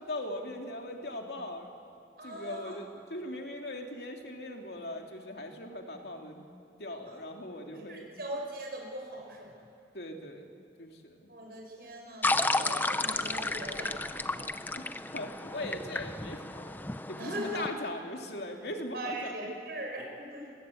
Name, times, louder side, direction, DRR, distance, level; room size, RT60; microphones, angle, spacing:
voice 1, 0.0-1.7 2.2-6.4 6.8-8.1 9.9-10.5 10.8-11.2 14.7-16.8 17.1-19.5, left 1 dB, 70° left, 3 dB, 2.5 m, -40 dB
voice 2, 2.2-2.8 7.1-7.2 7.5-9.6 11.3-14.3 17.2-17.6 18.9-20.5, right 1 dB, 60° right, 1 dB, 6.2 m, -40 dB
sound 1, 11.6-15.9, right 1 dB, 35° right, 7.6 m, -57 dB
sound 2, 12.2-17.7, left 2 dB, 10° left, 0.6 m, -32 dB
26.0 x 18.5 x 8.4 m, 2.7 s
head